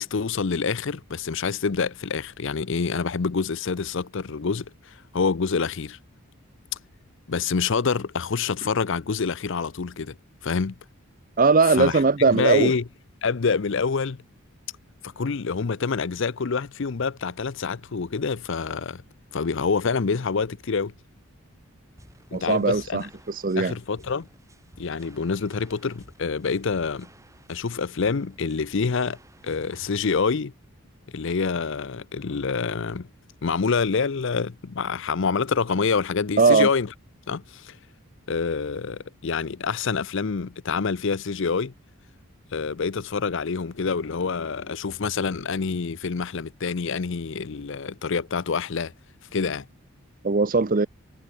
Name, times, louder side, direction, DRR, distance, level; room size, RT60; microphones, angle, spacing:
voice 1, 0.0-6.0 7.3-10.2 10.4-10.7 11.7-12.8 13.2-14.2 15.0-19.0 19.3-20.9 22.3-23.1 23.6-24.3 24.8-27.1 27.5-29.2 29.4-30.5 31.1-33.1 33.4-36.9 37.3-37.8 38.3-41.7 42.5-48.9 49.3-49.6, left 5 dB, 60° left, 0.6 m, -26 dB
voice 2, 11.4-12.7 22.3-23.0 23.3-23.7 36.4-36.7 50.2-50.9, right 4 dB, 40° right, 0.6 m, -19 dB
sound 1, 22.0-30.0, right 1 dB, 15° right, 3.2 m, -54 dB
head